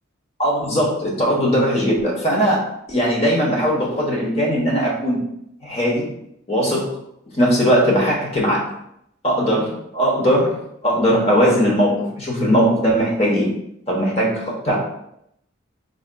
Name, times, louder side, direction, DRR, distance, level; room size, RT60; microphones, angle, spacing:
voice 1, 0.4-2.6 2.9-5.2 5.6-6.1 6.5-6.9 7.3-8.7 9.2-10.6 10.8-13.5 13.9-14.8, equal, 30° left, -2 dB, 1.0 m, -19 dB
5.0 x 3.8 x 2.2 m, 0.77 s
head